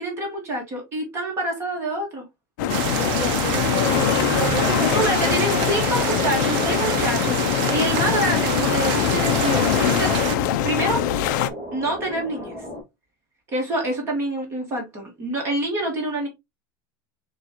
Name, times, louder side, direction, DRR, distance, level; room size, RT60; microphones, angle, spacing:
voice 1, 0.0-2.2 4.8-10.1 10.6-11.0 11.7-12.6 13.5-16.3, right 1 dB, 25° right, 1.4 m, -26 dB
sound 1, 2.6-11.5, left 11 dB, 65° left, 0.4 m, -23 dB
sound 2, 2.7-10.4, right 9 dB, 45° right, 0.5 m, -27 dB
voice 2, 2.9-5.1, equal, 20° left, 1.4 m, -30 dB
sound 3, 4.7-12.8, left 1 dB, 5° right, 2.0 m, -34 dB
6.6 x 2.4 x 2.8 m
supercardioid pair, 175°, 11 cm